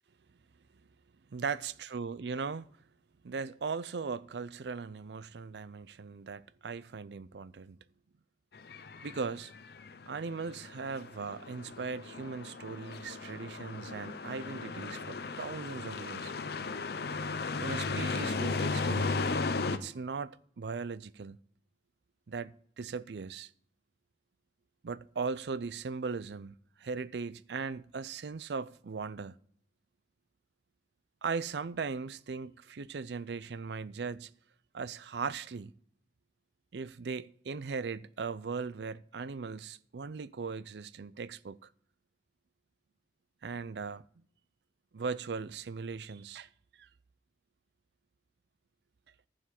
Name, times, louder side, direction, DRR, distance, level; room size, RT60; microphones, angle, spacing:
voice 1, 1.3-2.7 3.2-7.8 9.0-9.5 10.1-16.3 17.6-19.2 19.7-21.4 22.3-23.5 24.8-29.4 31.2-34.3 34.7-35.7 36.7-41.7 43.4-44.0 44.9-46.5 46.8-46.9, right 5 dB, 75° right, 0.5 m, -38 dB
sound 1, 8.5-19.8, left 4 dB, 60° left, 0.8 m, -36 dB
15.0 x 5.1 x 7.6 m
head